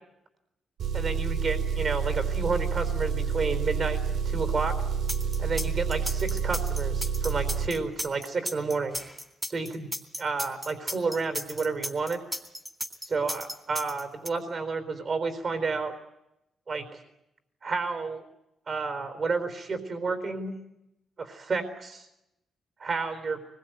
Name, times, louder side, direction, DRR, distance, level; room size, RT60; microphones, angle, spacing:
Engine, 0.8-7.7, right 6 dB, 70° right, 3.0 m, -29 dB
voice 1, 0.9-4.7 5.4-8.9 9.5-9.9 10.2-12.2 13.0-15.9 16.7-17.0 17.6-18.2 18.7-20.6 21.2-22.1 22.8-23.4, right 4 dB, 40° right, 9 dB, 4.0 m, -31 dB
sound 1, 5.1-14.3, equal, 5° right, 3.3 m, -34 dB
24.5 x 22.0 x 9.2 m, 0.88 s
cardioid pair, 115°, 0 cm